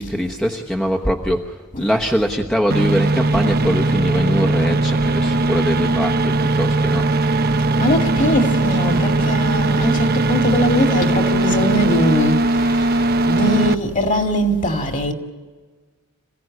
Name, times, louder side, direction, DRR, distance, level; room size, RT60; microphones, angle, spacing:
voice 1, 0.0-7.3, equal, 5° left, 1.1 m, -22 dB
sound 1, 2.7-13.7, right 2 dB, 45° right, 0.8 m, -19 dB
voice 2, 7.8-12.5 13.2-15.1, equal, 35° left, 2.3 m, -20 dB
27.0 x 16.5 x 9.6 m
head